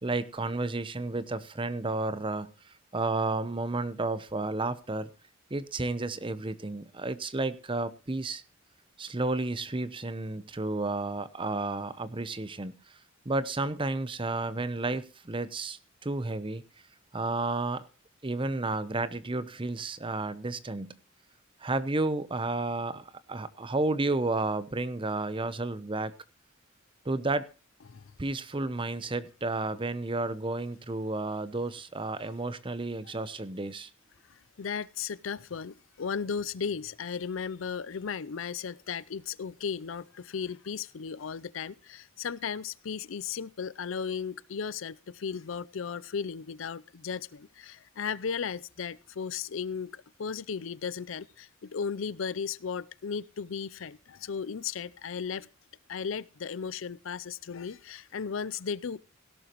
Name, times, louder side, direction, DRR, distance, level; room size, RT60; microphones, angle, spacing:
voice 1, 0.0-5.1 5.5-8.4 9.0-12.7 13.3-16.6 17.1-17.8 18.2-20.9 21.6-26.1 27.0-27.5 28.2-33.9, right 2 dB, 25° right, 0.8 m, -32 dB
voice 2, 34.6-55.5 55.9-59.0, left 6 dB, 75° left, 0.5 m, -35 dB
17.0 x 12.0 x 3.0 m
head